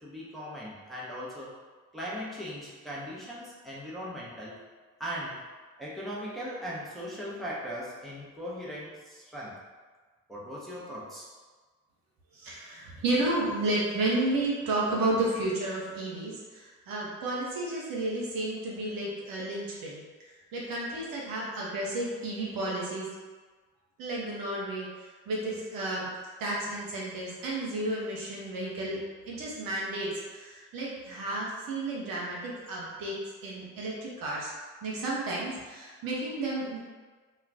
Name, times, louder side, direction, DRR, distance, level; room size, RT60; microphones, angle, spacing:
voice 1, 0.0-1.5 1.9-4.5 5.0-5.4 5.8-9.5 10.3-11.3, equal, ahead, -8 dB, 1.0 m, -39 dB
voice 2, 12.3-20.0 20.5-23.1 24.0-26.1 26.4-33.2 33.4-34.5 34.8-36.8, right 2 dB, 60° right, -5 dB, 0.8 m, -32 dB
2.4 x 2.3 x 3.4 m, 1.4 s
hypercardioid pair, 40°, 39 cm